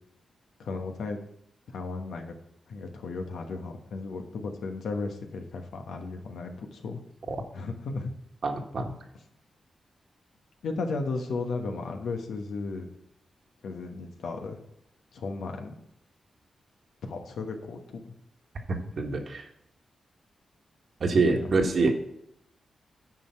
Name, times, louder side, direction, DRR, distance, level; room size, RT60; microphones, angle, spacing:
voice 1, 0.6-1.2 1.7-2.3 2.7-7.0 7.5-8.1 10.6-12.9 13.6-14.6 15.1-15.7 17.0-18.1 21.3-21.9, left 3 dB, 85° left, 4 dB, 1.2 m, -35 dB
voice 2, 8.4-8.9 18.7-19.5 21.0-21.9, right 3 dB, 60° right, 4 dB, 1.4 m, -26 dB
9.0 x 4.9 x 5.8 m, 0.77 s
cardioid pair, 70°, 0 cm